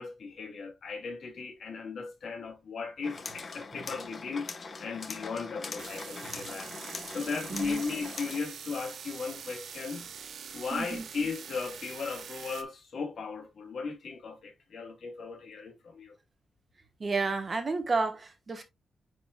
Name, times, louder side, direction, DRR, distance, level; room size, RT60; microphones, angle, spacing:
voice 1, 0.0-4.5 4.8-6.7 7.1-10.1 10.5-16.2, left 4 dB, 50° left, 2.8 m, -37 dB
sound 1, 3.0-8.4, left 4 dB, 35° left, 1.2 m, -42 dB
sound 2, 5.8-12.6, right 7 dB, 75° right, 1.1 m, -44 dB
voice 2, 7.5-7.8 10.7-11.0 17.0-18.6, right 3 dB, 30° right, 1.3 m, -31 dB
9.5 x 4.5 x 2.3 m
wide cardioid pair, 160°, 0 cm